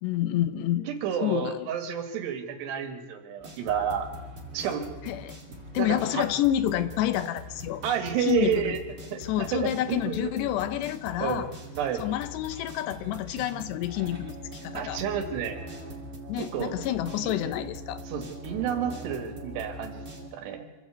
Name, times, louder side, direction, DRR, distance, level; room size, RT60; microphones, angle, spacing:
voice 1, 0.0-0.9 1.2-1.8 5.1-5.4 5.7-7.8 8.2-8.8 9.1-11.5 12.0-14.4 14.6-15.0 16.3-18.0, left 12 dB, 85° left, 12 dB, 3.0 m, -28 dB
voice 2, 0.9-4.1 4.5-4.9 5.8-6.3 7.8-10.3 11.2-11.4 11.8-12.1 14.7-15.6 16.4-16.7 17.2-17.4 18.1-20.0 20.3-20.7, right 8 dB, 80° right, 5 dB, 3.7 m, -30 dB
sound 1, 3.4-20.3, equal, 20° right, 2.6 m, -42 dB
26.5 x 13.5 x 8.1 m, 1.2 s
omnidirectional pair, 4.9 m